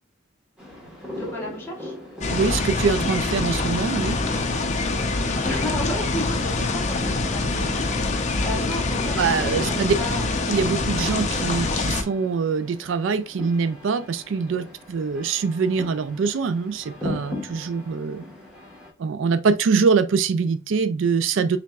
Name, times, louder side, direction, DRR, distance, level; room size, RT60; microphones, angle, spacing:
sound 1, 0.6-18.9, left 1 dB, 5° right, 1.3 m, -38 dB
voice 1, 1.1-1.9 5.4-10.3, equal, 10° left, 1.6 m, -33 dB
sound 2, 2.2-12.0, left 3 dB, 35° left, 0.6 m, -25 dB
voice 2, 2.3-4.2 9.2-9.9 10.5-18.2 19.0-21.6, right 5 dB, 70° right, 0.4 m, -23 dB
4.6 x 3.5 x 2.3 m
head